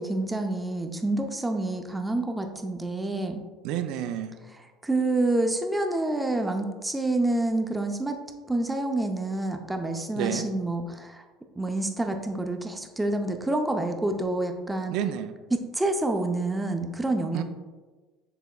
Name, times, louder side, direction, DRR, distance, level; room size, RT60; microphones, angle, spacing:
voice 1, 0.0-3.4 4.8-8.2 8.5-11.2 11.6-15.0 15.5-17.4, right 2 dB, 10° right, 4 dB, 0.5 m, -28 dB
voice 2, 3.6-4.4 10.2-10.5 14.9-15.3 17.3-17.4, right 10 dB, 70° right, 9 dB, 0.4 m, -30 dB
6.8 x 3.4 x 2.3 m, 1.3 s
supercardioid pair, 105°, 0 cm